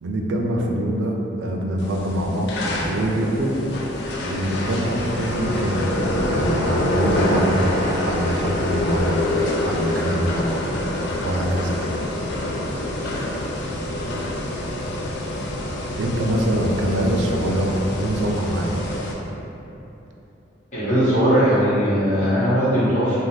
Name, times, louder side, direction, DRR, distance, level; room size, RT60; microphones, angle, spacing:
voice 1, 0.0-2.5 2.8-3.6 4.2-5.9 6.3-7.6 8.0-9.2 9.6-10.7 11.2-11.8 16.0-18.7, right 1 dB, 80° right, 0 dB, 0.4 m, -24 dB
sound 1, 1.8-19.1, left 1 dB, 60° left, 0.3 m, -26 dB
voice 2, 20.7-23.1, equal, 40° left, -13 dB, 1.2 m, -19 dB
2.5 x 2.3 x 3.2 m, 2.9 s
head